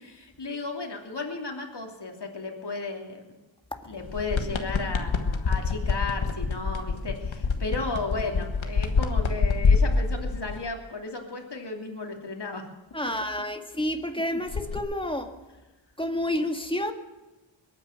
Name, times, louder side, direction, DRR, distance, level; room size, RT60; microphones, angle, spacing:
voice 1, 0.0-3.4 3.8-12.6, left 3 dB, 60° left, 1 dB, 3.0 m, -34 dB
sound 1, 4.0-10.6 14.5-14.8, left 4 dB, 85° left, 1.5 m, -26 dB
voice 2, 12.9-15.3 16.0-16.9, left 1 dB, 10° left, 5 dB, 2.0 m, -29 dB
22.0 x 9.8 x 6.6 m, 1.1 s
wide cardioid pair, 65°, 45 cm